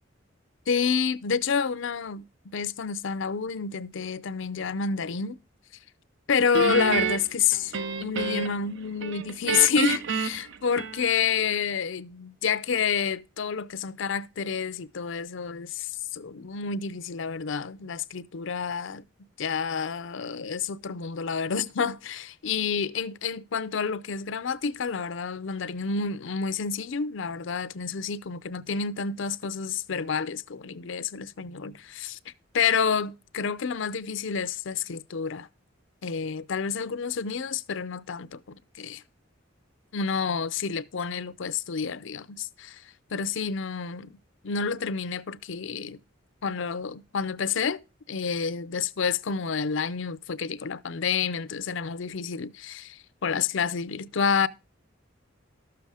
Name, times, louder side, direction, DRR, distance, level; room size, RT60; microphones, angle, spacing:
voice 1, 0.7-5.4 6.3-7.7 8.0-19.0 19.4-32.2 32.5-35.5 36.0-39.0 39.9-42.8 43.1-44.1 44.4-46.0 46.4-47.8 48.1-54.5, left 6 dB, 70° left, 0.6 m, -29 dB
Guitar, 6.5-8.7 9.0-11.3, right 5 dB, 65° right, 0.7 m, -29 dB
13.0 x 6.9 x 4.8 m
head